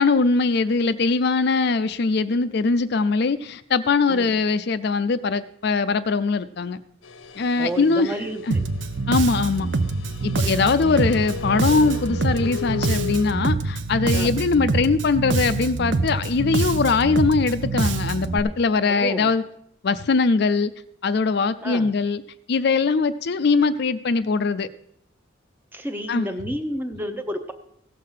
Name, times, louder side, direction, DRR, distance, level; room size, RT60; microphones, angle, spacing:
voice 1, 0.0-6.8 7.4-8.1 8.5-8.6 9.1-9.7 10.2-19.4 19.8-20.7 21.0-22.2 22.5-24.7 26.1-26.3, left 4 dB, 55° left, 12 dB, 0.4 m, -21 dB
sound 1, 7.0-13.3, left 8 dB, 85° left, 0.8 m, -36 dB
voice 2, 7.6-8.4 10.4-10.5 14.1-14.3 18.9-19.3 21.6-21.9 25.7-27.5, right 1 dB, 10° right, 6 dB, 0.8 m, -30 dB
Bass guitar, 8.5-18.4, right 3 dB, 65° right, 0.7 m, -25 dB
16.0 x 6.6 x 5.6 m, 0.70 s
head